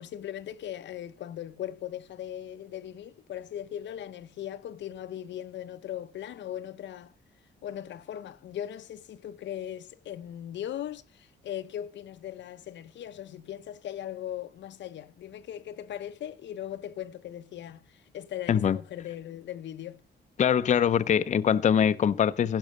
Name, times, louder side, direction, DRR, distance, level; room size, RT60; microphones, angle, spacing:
voice 1, 0.0-7.1 7.6-20.0, left 11 dB, 90° left, 0.8 m, -39 dB
voice 2, 20.4-22.6, left 8 dB, 40° left, 0.5 m, -23 dB
15.5 x 6.1 x 6.5 m
wide cardioid pair, 145°, 18 cm